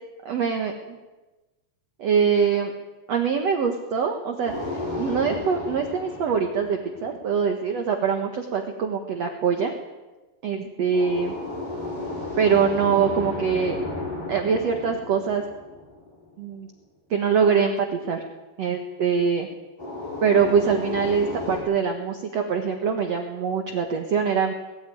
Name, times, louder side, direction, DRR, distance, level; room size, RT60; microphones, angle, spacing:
voice 1, 0.2-0.7 2.0-2.7 3.1-9.7 10.4-11.3 12.4-13.8 14.3-15.4 16.4-16.7 17.1-18.2 18.6-19.5 20.2-24.5, right 6 dB, 70° right, 4 dB, 1.6 m, -23 dB
sound 1, 4.4-7.5 10.9-16.3 19.8-21.6, left 2 dB, 30° left, 8.6 m, -33 dB
21.0 x 14.5 x 9.4 m, 1.1 s
omnidirectional pair, 5.2 m